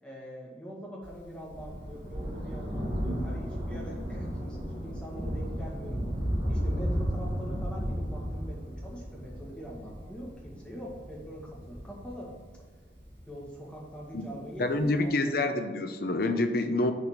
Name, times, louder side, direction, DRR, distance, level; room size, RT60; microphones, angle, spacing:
voice 1, 0.0-6.0 6.5-12.3 13.3-15.6, equal, 5° left, -4 dB, 1.8 m, -43 dB
Thunder, 1.0-13.9 14.8-14.9, equal, 25° right, 2.0 m, -34 dB
voice 2, 14.6-16.9, left 2 dB, 55° left, 7 dB, 0.7 m, -27 dB
7.2 x 4.2 x 6.6 m, 1.5 s
head